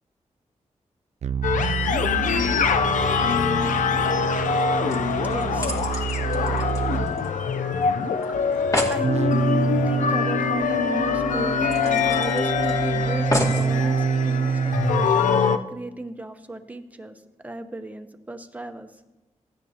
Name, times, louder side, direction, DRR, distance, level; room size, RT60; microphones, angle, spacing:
sound 1, 1.2-7.2 9.0-15.1, right 6 dB, 60° right, 0.4 m, -27 dB
sound 2, 1.4-15.6, left 6 dB, 90° left, 0.5 m, -24 dB
sound 3, 4.9-7.5 7.8-7.9 8.2-8.3 8.5-9.0 10.5-10.6 11.0-11.1 11.7-12.7 13.3-13.7 14.4-14.5, left 1 dB, 25° left, 2.3 m, -29 dB
voice 1, 5.2-5.8 8.2-8.4 8.9-9.2 9.9-19.0, right 2 dB, 10° right, 7 dB, 0.8 m, -35 dB
15.5 x 9.7 x 2.9 m, 1.1 s
cardioid pair, 75°, 13 cm